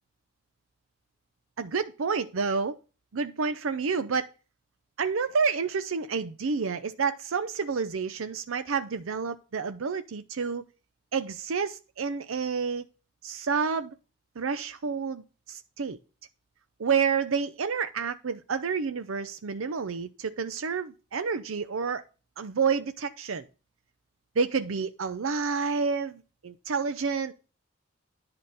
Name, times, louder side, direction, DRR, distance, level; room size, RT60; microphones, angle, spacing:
voice 1, 1.6-2.7 3.1-4.3 5.0-10.6 11.1-12.8 13.2-13.9 14.4-15.2 15.5-16.0 16.8-22.0 22.4-23.4 24.4-27.3, right 5 dB, 80° right, 0.6 m, -29 dB
10.5 x 3.9 x 6.5 m
head